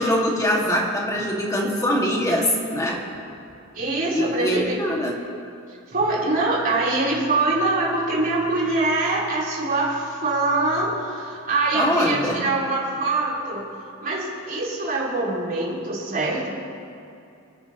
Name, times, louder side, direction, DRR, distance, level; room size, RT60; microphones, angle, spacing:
voice 1, 0.0-3.0 4.1-5.2 11.7-12.4, equal, 15° left, -2 dB, 2.1 m, -23 dB
voice 2, 3.7-4.8 5.9-13.7 14.0-16.5, right 2 dB, 40° right, -6 dB, 4.1 m, -24 dB
29.5 x 10.5 x 3.1 m, 2.5 s
head